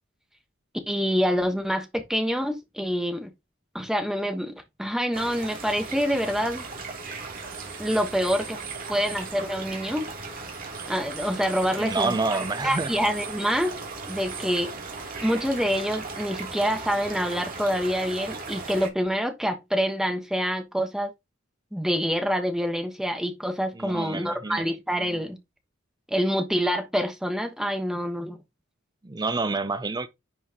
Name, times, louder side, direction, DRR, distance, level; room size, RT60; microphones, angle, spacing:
voice 1, 0.9-3.3 3.7-4.5 4.8-6.6 7.8-8.6 8.9-10.1 10.9-12.2 12.6-13.7 14.1-14.7 15.2-21.1 21.7-25.4 26.1-28.4, equal, 5° right, 1.1 m, -26 dB
sound 1, 5.1-18.9, right 4 dB, 45° right, 2.9 m, -37 dB
voice 2, 11.8-12.9 23.8-24.6 29.0-30.1, right 3 dB, 20° right, 0.5 m, -28 dB
10.5 x 5.6 x 2.9 m
head